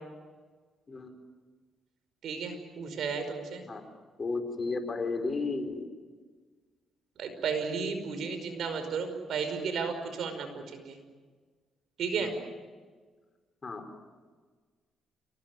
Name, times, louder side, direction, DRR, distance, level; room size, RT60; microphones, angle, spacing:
voice 1, 2.2-3.6 7.2-11.0 12.0-12.3, right 5 dB, 70° right, 8 dB, 5.3 m, -33 dB
voice 2, 4.2-5.9 12.2-12.3 13.6-13.8, left 3 dB, 35° left, 6 dB, 4.4 m, -33 dB
29.0 x 19.0 x 9.6 m, 1.5 s
cardioid pair, 90°, 0 cm